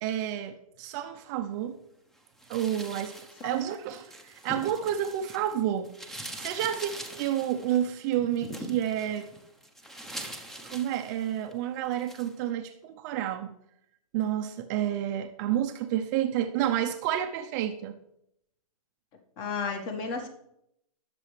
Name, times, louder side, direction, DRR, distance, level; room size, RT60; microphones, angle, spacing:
voice 1, 0.0-1.8 2.5-3.2 3.4-6.9 7.2-9.3 10.7-13.5 14.1-18.0, right 11 dB, 30° right, 0.6 m, -30 dB
sound 1, 2.4-5.5 5.8-11.5 11.9-12.3, right 1 dB, ahead, 0.9 m, -43 dB
voice 2, 19.4-20.3, left 4 dB, 30° left, 1.7 m, -33 dB
19.0 x 6.9 x 3.3 m
hypercardioid pair, 140°, 19 cm